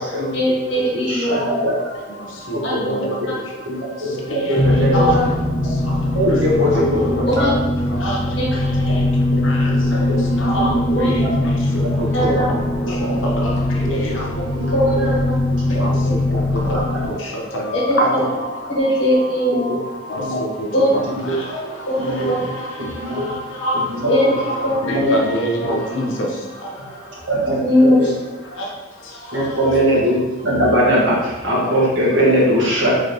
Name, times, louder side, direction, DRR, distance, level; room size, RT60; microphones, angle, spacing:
voice 1, 0.3-1.5 2.6-2.7 4.9-5.2 7.3-7.5 8.4-8.5 10.9-11.1 12.1-12.5 14.7-15.1 16.0-16.2 17.7-18.2 18.7-19.7 20.7-20.9 21.9-22.0 22.3-22.4 24.1-24.8 25.1-25.2 27.4-28.1, left 1 dB, 65° left, -5 dB, 1.3 m, -19 dB
voice 2, 0.9-1.7 2.7-3.3 3.6-3.7 4.0-5.1 6.1-7.5 8.9-9.0 9.3-10.2 10.5-10.8 11.1-11.3 12.3-12.4 13.8-14.0 14.5-14.7 15.7-15.9 16.6-17.0 17.9-18.0 19.5-19.8 20.2-20.4 21.3-21.4 22.0-22.3 23.0-23.3 24.0-24.2 24.8-25.1 25.6-25.8 27.3-27.6 28.0-28.1 29.3-30.2 30.4-33.0, equal, 80° right, -5 dB, 1.3 m, -20 dB
voice 3, 1.8-7.6 7.9-14.7 15.3-18.8 19.2-19.3 19.6-27.6 28.4-29.8, equal, 80° left, -1 dB, 0.8 m, -28 dB
sound 1, 4.6-17.1, left 1 dB, 25° left, 0.5 m, -20 dB
3.9 x 3.3 x 2.7 m, 1.1 s
head